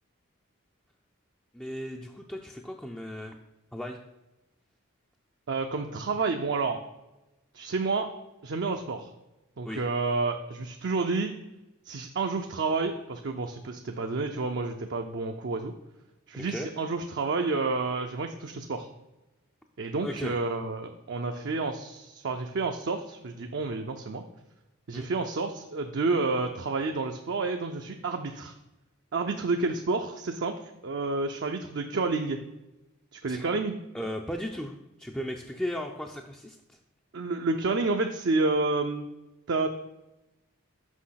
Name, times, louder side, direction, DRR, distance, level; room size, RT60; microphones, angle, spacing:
voice 1, 1.5-3.4 3.7-4.0 9.6-9.8 16.5-16.7 20.0-20.3 24.9-25.1 33.3-33.5 33.9-36.8, equal, 5° left, 1 dB, 0.4 m, -36 dB
voice 2, 5.5-6.8 7.5-8.1 8.4-9.1 9.6-11.4 11.9-15.7 16.3-18.9 19.8-24.2 24.9-28.5 29.1-30.6 30.8-32.4 33.2-33.8 37.1-39.1 39.5-39.7, right 3 dB, 55° right, 4 dB, 0.5 m, -29 dB
6.3 x 5.4 x 5.7 m, 0.99 s
head